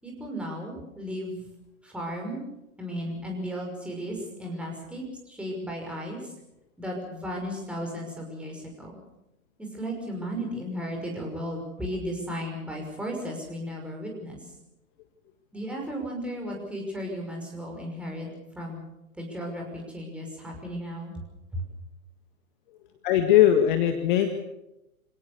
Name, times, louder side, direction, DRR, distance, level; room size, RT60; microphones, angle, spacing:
voice 1, 0.0-1.4 1.8-2.4 2.8-6.3 6.8-8.9 9.6-14.4 15.5-18.3 18.6-18.8 19.2-21.1 21.5-21.6, equal, 5° right, 0 dB, 5.8 m, -35 dB
voice 2, 23.0-24.3, left 11 dB, 35° left, 6 dB, 1.9 m, -20 dB
26.5 x 17.5 x 6.7 m, 0.91 s
figure-of-eight pair, 120°, 44 cm